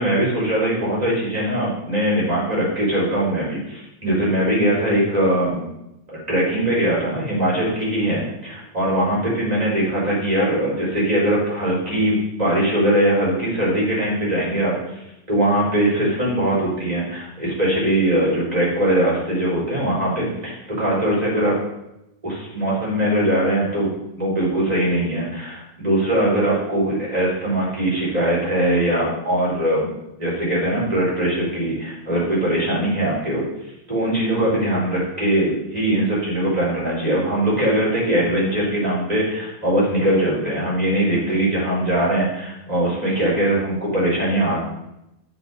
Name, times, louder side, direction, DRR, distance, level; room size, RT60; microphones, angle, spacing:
voice 1, 0.0-5.7 6.1-15.0 15.3-21.5 22.2-23.9 24.2-29.9 30.2-33.4 33.9-44.6, right 1 dB, 25° right, -6 dB, 4.1 m, -21 dB
13.5 x 5.7 x 4.1 m, 0.89 s
omnidirectional pair, 1.5 m